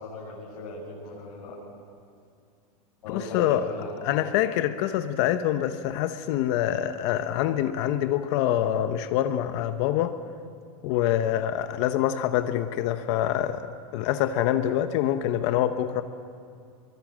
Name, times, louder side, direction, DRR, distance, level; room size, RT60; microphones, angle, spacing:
voice 1, 0.0-1.5 3.0-3.9, left 3 dB, 85° left, -8 dB, 7.8 m, -38 dB
voice 2, 3.1-3.7 4.0-10.2 10.8-16.0, left 11 dB, 50° left, 9 dB, 1.0 m, -25 dB
24.0 x 23.5 x 7.5 m, 2.3 s
supercardioid pair, 150°, 19 cm